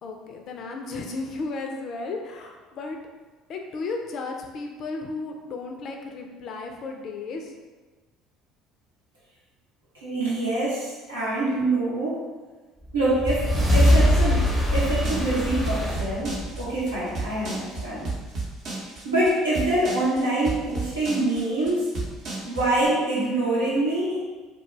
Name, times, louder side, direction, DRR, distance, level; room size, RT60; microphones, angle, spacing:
voice 1, 0.0-3.0 3.5-7.5, left 3 dB, 50° left, 2 dB, 0.4 m, -34 dB
voice 2, 10.0-12.2 12.9-18.1 19.0-21.9 22.4-24.2, right 1 dB, 80° right, -8 dB, 0.8 m, -25 dB
sound 1, 12.9-17.5, equal, 10° right, 0.7 m, -23 dB
sound 2, 13.3-22.9, right 3 dB, 50° right, 0.7 m, -32 dB
2.3 x 2.2 x 3.1 m, 1.3 s
figure-of-eight pair, 60°, 0 cm